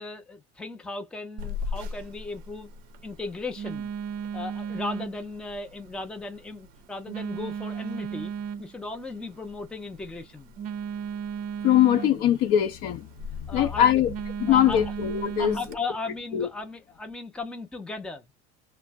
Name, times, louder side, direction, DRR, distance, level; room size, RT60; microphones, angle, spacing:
voice 1, 0.0-2.7 3.0-3.9 4.3-8.3 8.6-10.5 13.5-14.0 14.5-14.8 15.4-18.2, left 3 dB, 5° left, 0.5 m, -36 dB
Telephone, 1.4-15.8, right 4 dB, 45° right, 0.5 m, -36 dB
voice 2, 11.6-13.1 13.5-14.1 14.4-15.6 16.3-16.5, left 10 dB, 50° left, 0.6 m, -21 dB
2.5 x 2.0 x 3.3 m
supercardioid pair, 140°, 20 cm